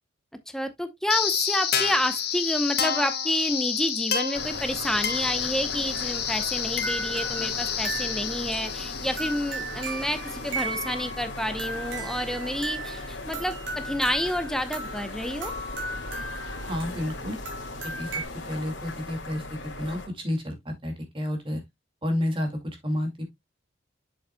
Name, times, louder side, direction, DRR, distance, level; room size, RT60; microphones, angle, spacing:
voice 1, 0.5-15.5, equal, 5° left, 0.8 m, -29 dB
sound 1, 1.1-10.1, left 8 dB, 60° left, 1.5 m, -29 dB
sound 2, 4.3-20.1, left 2 dB, 90° left, 2.0 m, -38 dB
sound 3, 5.9-18.2, right 3 dB, 75° right, 3.6 m, -37 dB
voice 2, 16.7-17.4 18.0-18.1 18.5-20.0 20.2-21.6 22.0-23.2, left 1 dB, 30° right, 2.2 m, -30 dB
7.8 x 7.2 x 2.2 m
head